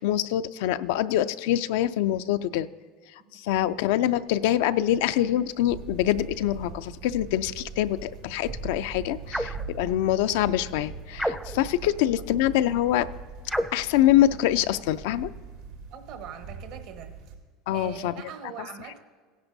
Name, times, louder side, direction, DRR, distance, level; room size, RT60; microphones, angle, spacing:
voice 1, 0.0-2.7 3.3-13.1 13.7-15.3 17.7-18.1, left 12 dB, 80° left, 12 dB, 0.3 m, -25 dB
sound 1, 5.7-17.4, right 4 dB, 90° right, 2.2 m, -41 dB
sound 2, 9.3-9.7 11.1-11.7 13.5-13.9, equal, ahead, 0.4 m, -30 dB
voice 2, 15.9-17.1 17.7-19.0, right 8 dB, 65° right, 7 dB, 1.0 m, -42 dB
16.5 x 10.5 x 2.7 m, 1.5 s
supercardioid pair, 110°, 0 cm